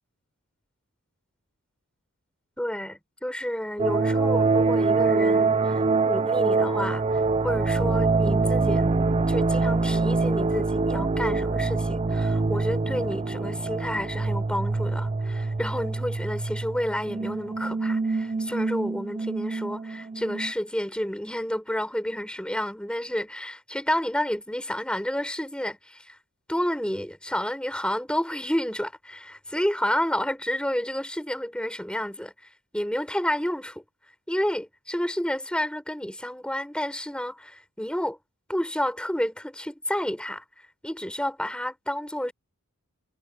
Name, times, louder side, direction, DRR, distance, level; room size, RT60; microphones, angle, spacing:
voice 1, 2.6-8.9 9.3-26.2 26.5-32.3 32.7-33.8 34.3-38.2 38.5-40.4 40.8-42.3, equal, 5° left, 6.1 m, -30 dB
sound 1, 3.8-20.5, right 3 dB, 25° right, 0.5 m, -25 dB
head